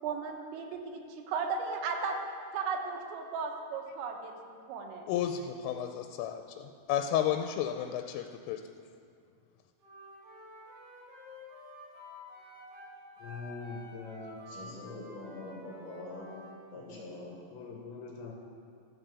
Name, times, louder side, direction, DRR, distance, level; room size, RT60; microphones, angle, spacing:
voice 1, 0.0-2.2 2.5-5.1, right 5 dB, 90° right, 2 dB, 3.7 m, -36 dB
voice 2, 5.1-8.6, left 10 dB, 90° left, 6 dB, 3.1 m, -32 dB
Wind instrument woodwind instrument, 9.8-16.6, equal, 70° right, 5.2 m, -50 dB
voice 3, 13.2-15.0 16.8-17.1 17.5-18.3, left 4 dB, 70° left, 0 dB, 3.2 m, -44 dB
voice 4, 14.5-16.3 16.7-17.4, left 2 dB, 50° left, -4 dB, 3.5 m, -44 dB
13.0 x 7.3 x 6.8 m, 2.2 s
omnidirectional pair, 5.6 m